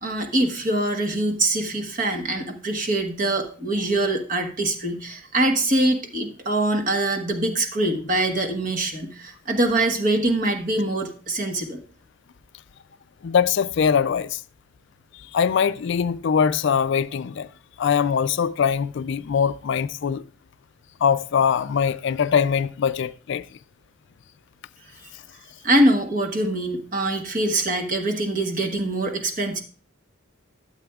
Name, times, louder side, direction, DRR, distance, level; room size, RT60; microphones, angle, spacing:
voice 1, 0.0-11.8 25.6-29.6, right 1 dB, 40° right, 1.3 m, -23 dB
voice 2, 13.2-14.4 15.1-17.5 17.8-20.2 21.0-23.4, left 7 dB, 60° left, 0.3 m, -22 dB
12.5 x 7.7 x 2.4 m
head